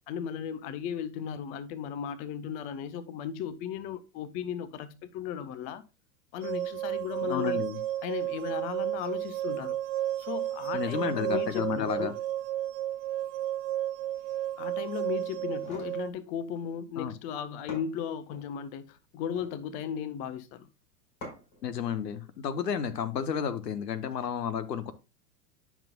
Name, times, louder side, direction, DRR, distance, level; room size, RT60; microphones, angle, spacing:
voice 1, 0.1-5.8 6.3-7.6 8.0-9.8 10.2-12.2 14.6-20.7, left 8 dB, 20° left, 0.3 m, -36 dB
sound 1, 6.4-16.1, right 13 dB, 40° right, 0.8 m, -32 dB
voice 2, 7.2-7.8 10.7-12.1 17.0-17.1 21.6-24.9, left 8 dB, 80° left, 1.0 m, -32 dB
sound 2, 15.4-16.0 17.2-17.3 17.7-18.5 19.1-19.6 21.2-21.6, left 1 dB, 40° left, 4.7 m, -45 dB
10.5 x 5.9 x 2.2 m
hypercardioid pair, 100°, 48 cm